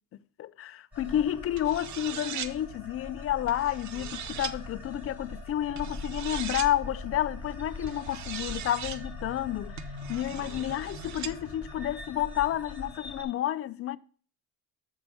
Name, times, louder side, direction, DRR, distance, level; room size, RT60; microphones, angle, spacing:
voice 1, 0.4-9.8 10.1-14.0, left 12 dB, 40° left, 0.4 m, -30 dB
sound 1, 0.9-13.2, left 2 dB, 5° right, 2.9 m, -42 dB
sound 2, 1.6-2.5 3.5-4.5 5.8-6.7 7.9-9.0 9.8-11.3, right 10 dB, 45° right, 0.7 m, -39 dB
7.1 x 5.9 x 6.3 m
cardioid pair, 125°, 38 cm